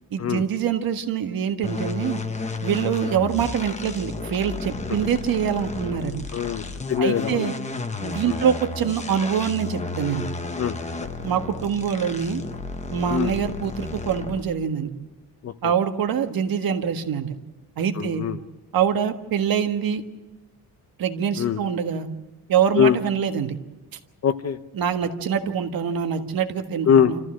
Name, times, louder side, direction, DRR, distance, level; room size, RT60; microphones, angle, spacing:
voice 1, 0.1-2.2 2.6-6.2 7.0-7.5 8.0-10.3 11.2-12.4 12.9-14.9 15.6-17.3 17.8-18.2 18.7-20.0 21.0-22.1 22.5-23.5 24.7-27.2, right 8 dB, 70° right, 6 dB, 1.6 m, -24 dB
sound 1, 1.6-14.6, left 3 dB, 20° left, 1.0 m, -32 dB
voice 2, 6.3-6.6 6.9-7.5 8.3-8.4 10.6-11.1 13.1-13.3 15.4-15.5 18.0-18.4 21.4-21.6 22.7-23.0 24.2-24.6 26.9-27.1, left 8 dB, 45° left, 10 dB, 0.7 m, -22 dB
28.5 x 14.5 x 7.6 m, 1.2 s
wide cardioid pair, 170°, 37 cm